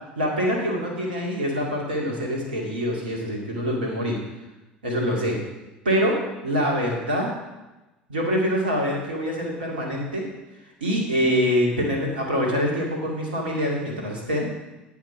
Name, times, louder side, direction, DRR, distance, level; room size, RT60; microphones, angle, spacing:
voice 1, 0.2-4.2 4.8-5.4 5.8-6.2 6.4-7.3 8.1-10.2 10.8-14.5, equal, 80° right, -1 dB, 2.2 m, -25 dB
8.8 x 5.9 x 6.1 m, 1.0 s
figure-of-eight pair, 65°, 5 cm